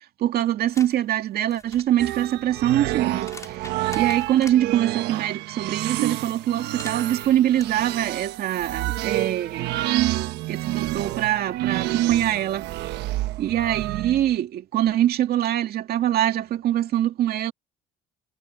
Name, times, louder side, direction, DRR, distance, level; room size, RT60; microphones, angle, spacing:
voice 1, 0.2-3.7 4.0-9.7 10.5-12.7 13.4-17.5, right 12 dB, 65° right, 2.4 m, -24 dB
sound 1, 0.7-1.0 1.4-4.6 6.5-7.6, left 3 dB, 20° left, 4.2 m, -44 dB
sound 2, 2.0-14.3, right 16 dB, 85° right, 1.1 m, -28 dB
cardioid pair, 110°, 17 cm